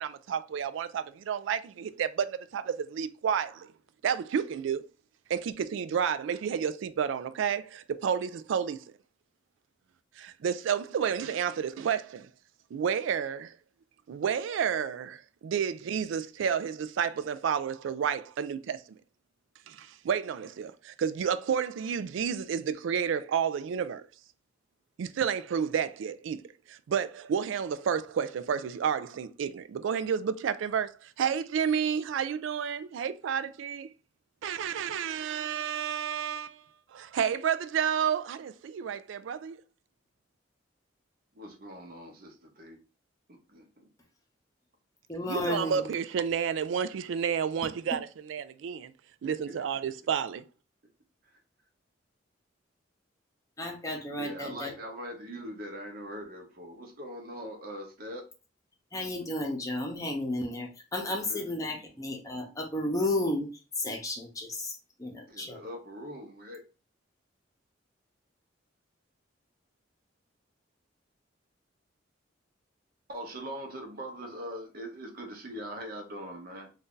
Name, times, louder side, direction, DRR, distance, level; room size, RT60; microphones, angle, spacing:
voice 1, 0.0-2.6 2.9-3.5 4.0-4.8 5.3-8.8 10.4-12.2 12.7-13.5 14.1-15.2 15.4-18.8 20.1-20.7 21.0-24.0 25.0-26.4 26.9-30.9 31.2-33.9 34.4-36.5 36.9-39.6 45.3-48.0 48.3-48.9 49.2-50.4, right 7 dB, 80° right, 0.3 m, -30 dB
voice 2, 41.3-42.8 43.3-43.9 49.2-49.9 54.2-58.3 61.0-61.9 65.3-66.6 73.1-76.7, equal, 50° right, 0.8 m, -42 dB
voice 3, 45.1-45.9 53.6-54.7 58.9-63.5 63.8-65.6, left 1 dB, 15° left, 0.7 m, -33 dB
2.7 x 2.4 x 3.6 m
head